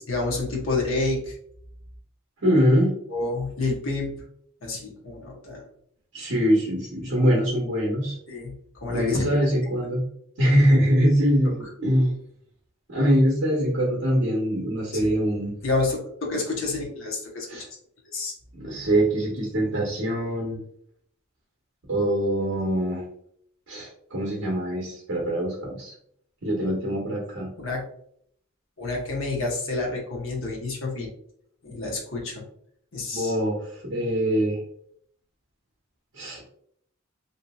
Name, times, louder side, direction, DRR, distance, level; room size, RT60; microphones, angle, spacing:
voice 1, 0.1-1.4 3.1-4.2 4.6-5.6 8.3-8.5 8.8-9.3 14.9-15.1 15.6-17.5 18.1-18.3 27.6-27.8 28.8-31.1 31.6-32.4 32.9-33.3, left 3 dB, 70° left, -2 dB, 0.8 m, -29 dB
voice 2, 2.4-2.9 6.1-8.1 8.9-10.0 10.4-12.1 12.9-15.5 17.5-17.6 18.5-20.6 21.9-23.0 23.7-25.9 26.4-27.5 33.1-34.6 36.1-36.4, equal, 65° right, -3 dB, 0.8 m, -23 dB
2.7 x 2.7 x 2.2 m, 0.67 s
head